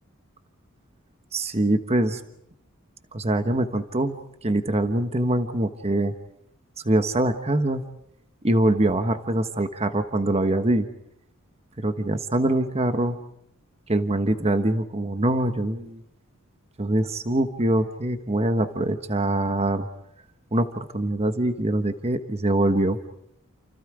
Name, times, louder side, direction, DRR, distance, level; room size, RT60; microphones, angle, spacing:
voice 1, 1.3-2.2 3.1-6.1 6.8-7.8 8.4-10.9 11.8-13.2 13.9-16.0 16.8-19.9 20.5-20.7 20.9-23.0, right 1 dB, 30° right, 8 dB, 1.3 m, -23 dB
29.5 x 28.5 x 5.0 m, 0.77 s
head